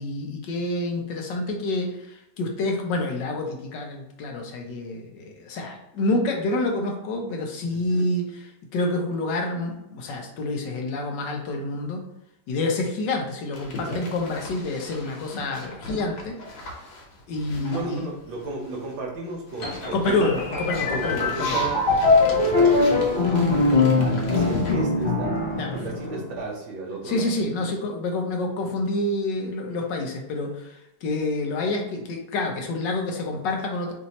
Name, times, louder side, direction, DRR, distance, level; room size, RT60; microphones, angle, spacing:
voice 1, 0.0-8.4 8.7-12.0 12.5-16.4 17.3-18.0 19.9-21.6 25.6-25.8 27.0-30.8 31.0-33.9, left 2 dB, 70° left, 2 dB, 1.3 m, -28 dB
voice 2, 7.7-8.1 13.7-14.1 17.5-20.3 20.9-21.9 22.3-25.4 25.7-27.8, right 2 dB, 80° right, -1 dB, 1.7 m, -34 dB
sound 1, 13.5-19.0 19.3-24.7, left 1 dB, 85° left, 1.8 m, -39 dB
sound 2, 19.6-26.3, left 3 dB, 45° left, 0.7 m, -22 dB
5.2 x 2.7 x 2.9 m, 0.85 s
omnidirectional pair, 2.1 m